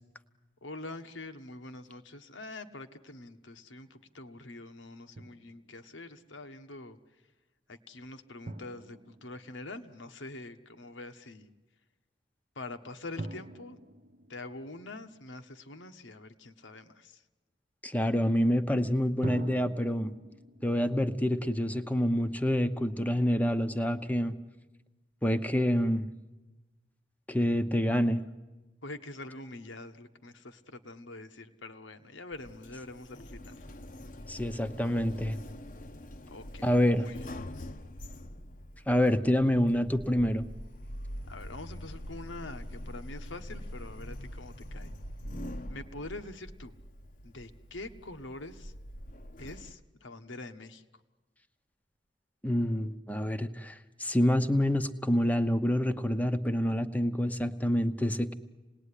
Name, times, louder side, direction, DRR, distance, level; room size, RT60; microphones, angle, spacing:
voice 1, 0.6-7.0 7.7-11.5 12.5-13.8 14.3-17.2 28.8-33.6 36.3-37.3 41.3-44.9 45.7-46.7 47.2-48.7 49.4-51.0, left 2 dB, 80° left, 8 dB, 1.4 m, -45 dB
Drum, 5.2-5.9 8.5-10.2 13.2-15.7 19.2-22.4, right 2 dB, 40° right, 0.9 m, -45 dB
voice 2, 17.8-20.1 20.6-24.4 25.2-26.1 27.3-28.2 34.3-35.4 36.6-37.1 38.9-40.5 52.4-58.3, equal, 10° left, 9 dB, 0.8 m, -27 dB
Sliding door, 32.3-49.7, left 1 dB, 45° left, 0.9 m, -44 dB
27.0 x 19.5 x 10.0 m, 1.2 s
head